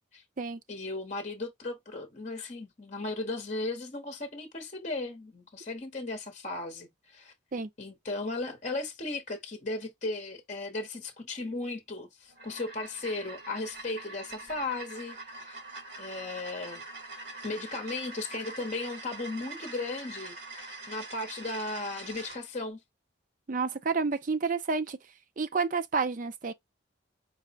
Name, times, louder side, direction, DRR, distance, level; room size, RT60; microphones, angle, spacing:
voice 1, 0.7-7.3 7.8-15.6 16.0-16.8 17.4-22.8, left 2 dB, 40° left, 0.9 m, -36 dB
sound 1, 12.3-22.4, right 3 dB, 60° right, 1.9 m, -44 dB
voice 2, 23.5-25.0 25.4-26.5, right 4 dB, 40° right, 0.5 m, -29 dB
4.7 x 2.1 x 4.0 m
head